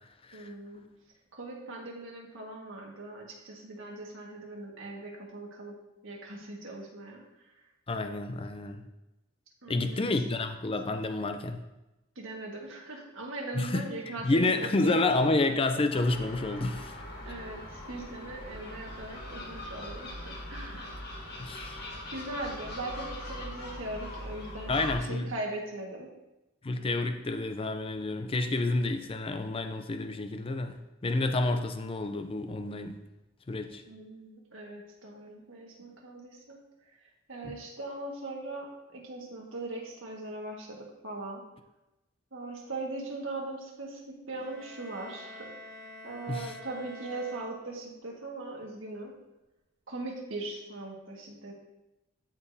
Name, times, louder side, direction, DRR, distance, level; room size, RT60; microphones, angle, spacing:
voice 1, 0.3-0.8 1.3-5.7 6.0-7.2 9.6-10.0 12.1-15.2 17.2-20.9 22.1-24.7 25.1-26.1 33.9-36.6 37.3-41.4 42.3-45.7 46.0-49.1 49.9-51.5, right 2 dB, 70° right, -1 dB, 1.7 m, -40 dB
voice 2, 7.9-8.8 9.7-11.6 13.5-17.0 20.7-20.8 21.4-21.9 24.7-25.3 26.6-33.0 33.5-33.8 37.4-37.5 46.3-46.5, left 2 dB, 25° left, 7 dB, 0.5 m, -29 dB
Gull seagull, 15.9-24.9, left 1 dB, 50° left, 1.4 m, -41 dB
sound 1, 44.3-48.2, left 1 dB, 70° left, 1.3 m, -48 dB
13.0 x 5.0 x 2.8 m, 0.98 s
head